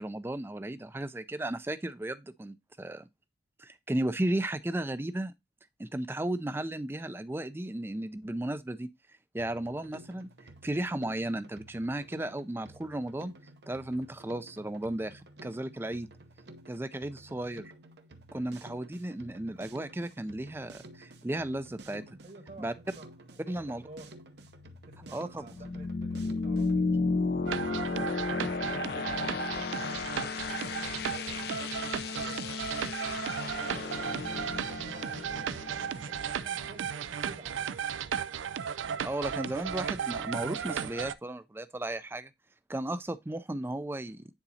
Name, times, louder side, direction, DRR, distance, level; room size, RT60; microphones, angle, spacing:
voice 1, 0.0-3.1 3.6-5.3 5.8-8.9 9.3-10.3 10.6-13.3 13.7-16.1 16.7-17.7 18.3-22.0 22.6-22.7 23.5-23.8 25.1-25.5 39.0-42.3 42.7-44.3, right 1 dB, 10° right, 0.3 m, -34 dB
Drum kit, 9.4-26.8, right 2 dB, 60° right, 0.8 m, -52 dB
voice 2, 22.2-24.2 24.8-27.0 27.3-28.3 28.6-33.0 33.6-37.0 37.2-37.7, right 2 dB, 40° right, 1.2 m, -52 dB
sound 1, 24.5-37.1, left 4 dB, 55° left, 0.4 m, -34 dB
sound 2, 27.5-41.1, right 8 dB, 85° right, 0.4 m, -35 dB
9.6 x 4.0 x 2.7 m
head